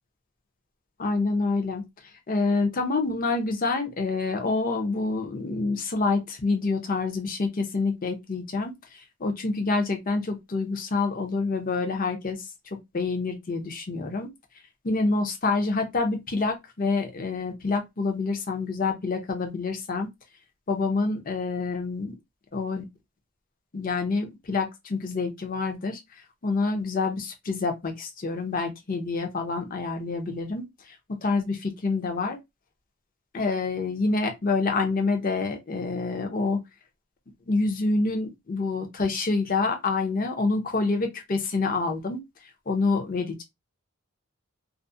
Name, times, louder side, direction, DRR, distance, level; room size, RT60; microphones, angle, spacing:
voice 1, 1.0-1.8 2.3-12.5 12.9-14.3 14.8-20.1 20.7-22.1 22.5-22.9 23.7-26.0 26.4-31.0 31.2-32.4 33.3-36.6 37.5-42.2 42.7-43.4, left 3 dB, 40° left, 0.6 m, -27 dB
2.4 x 2.0 x 2.6 m
head